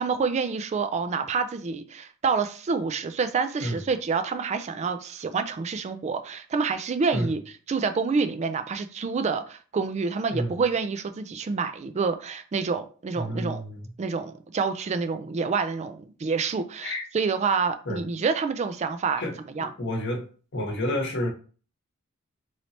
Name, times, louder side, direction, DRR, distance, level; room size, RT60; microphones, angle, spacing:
voice 1, 0.0-7.4 7.7-13.6 14.0-19.2 19.5-19.7, right 5 dB, 30° right, 0.3 m, -27 dB
voice 2, 13.2-13.9 16.8-17.0 17.9-18.0 19.2-19.3 19.8-20.2 20.5-21.3, equal, 55° left, 1.0 m, -29 dB
3.2 x 2.8 x 4.0 m
head